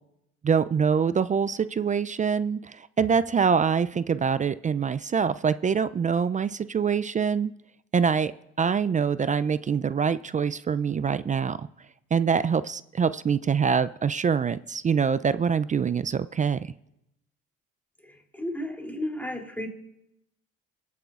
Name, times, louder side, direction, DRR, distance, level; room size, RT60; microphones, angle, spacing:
voice 1, 0.4-7.5 7.9-8.3 8.6-11.6 12.1-16.7, right 6 dB, 25° right, 15 dB, 0.4 m, -24 dB
voice 2, 18.3-19.7, left 1 dB, 5° left, 1 dB, 2.9 m, -32 dB
24.5 x 9.2 x 2.5 m, 0.84 s
hypercardioid pair, 60°, 31 cm